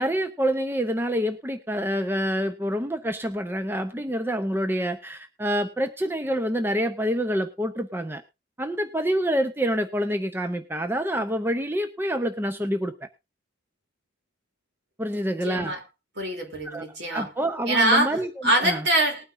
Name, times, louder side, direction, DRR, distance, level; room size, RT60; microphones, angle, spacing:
voice 1, 0.0-8.2 8.6-13.1 15.0-15.7 16.6-16.8 17.1-18.3 18.6-18.9, equal, 10° right, 8 dB, 0.6 m, -27 dB
voice 2, 15.1-15.8 16.2-17.3 17.7-19.2, right 1 dB, 65° right, 3 dB, 3.2 m, -24 dB
20.0 x 9.3 x 2.6 m, 0.25 s
head